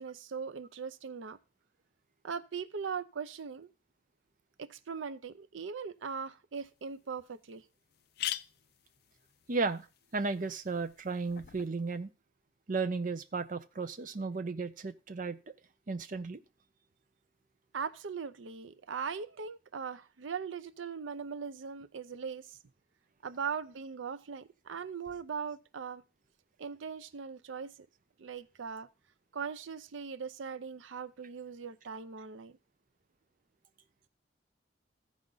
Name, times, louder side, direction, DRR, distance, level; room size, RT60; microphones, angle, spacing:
voice 1, 0.0-1.4 2.2-3.7 4.6-7.6 17.7-22.6 23.2-26.0 26.6-27.7 28.2-28.9 29.3-32.6, right 6 dB, 85° right, 0.5 m, -40 dB
sound 1, 6.6-6.7 7.2-7.3 7.5-7.6 7.9-11.7, left 12 dB, 55° left, 0.4 m, -43 dB
voice 2, 9.5-9.9 10.1-12.1 12.7-15.5 15.9-16.4, right 4 dB, 45° right, 0.6 m, -34 dB
14.5 x 5.0 x 3.9 m
head